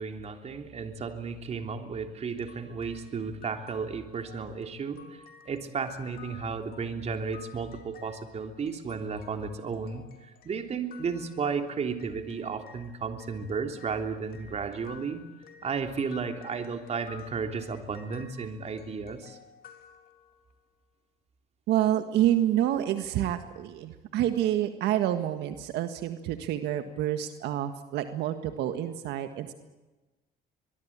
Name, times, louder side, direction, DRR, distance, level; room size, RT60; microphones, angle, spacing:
voice 1, 0.0-15.2 15.6-19.4, right 5 dB, 40° right, 5 dB, 3.4 m, -34 dB
sound 1, 2.4-12.9 13.2-20.6, left 8 dB, 60° left, 3.7 m, -53 dB
voice 2, 21.7-29.5, right 12 dB, 80° right, 8 dB, 1.7 m, -28 dB
24.0 x 22.5 x 8.8 m, 1.1 s
cardioid pair, 110°, 17 cm